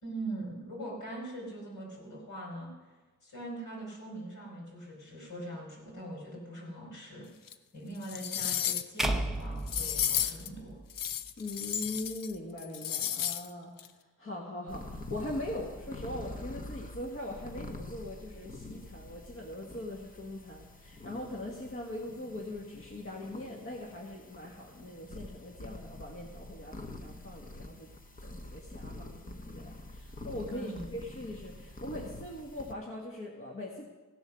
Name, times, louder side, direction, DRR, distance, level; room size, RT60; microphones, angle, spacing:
voice 1, 0.0-2.7 3.2-7.3 7.7-10.8 30.5-30.9, right 1 dB, 70° left, -2 dB, 5.0 m, -42 dB
sound 1, 7.5-7.6 8.0-9.0 9.7-10.5 10.9-12.3 12.6-13.5 13.8-13.9, left 9 dB, 90° left, 0.6 m, -32 dB
sound 2, 9.0-11.3, right 1 dB, ahead, 0.7 m, -34 dB
voice 2, 11.4-13.9 14.2-27.9 28.2-33.8, left 1 dB, 40° left, -1 dB, 1.5 m, -41 dB
sound 3, 14.7-32.7, left 2 dB, 25° left, 0.9 m, -46 dB
16.0 x 7.8 x 6.2 m, 1.2 s
wide cardioid pair, 130°, 32 cm